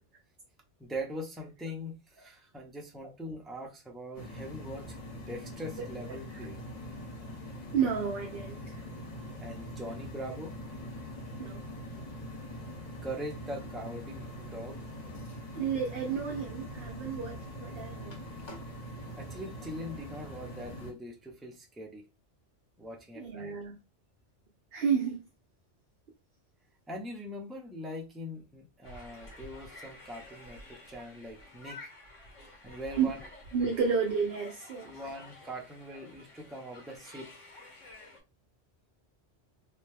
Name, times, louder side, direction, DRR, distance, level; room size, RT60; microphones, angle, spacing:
voice 1, 0.8-6.6 9.4-10.6 13.0-14.9 19.2-22.0 22.8-23.5 26.9-31.8 32.6-33.2 34.8-37.3, equal, ahead, 0.3 m, -42 dB
sound 1, 4.1-20.9, equal, 40° left, 0.8 m, -43 dB
voice 2, 7.7-8.8 11.4-11.6 15.6-18.2 23.2-23.8 24.7-25.2 33.0-33.1 33.5-34.9, right 6 dB, 60° right, 0.8 m, -31 dB
sound 2, 28.8-38.2, left 2 dB, 90° left, 1.2 m, -51 dB
2.9 x 2.2 x 3.3 m
omnidirectional pair, 1.2 m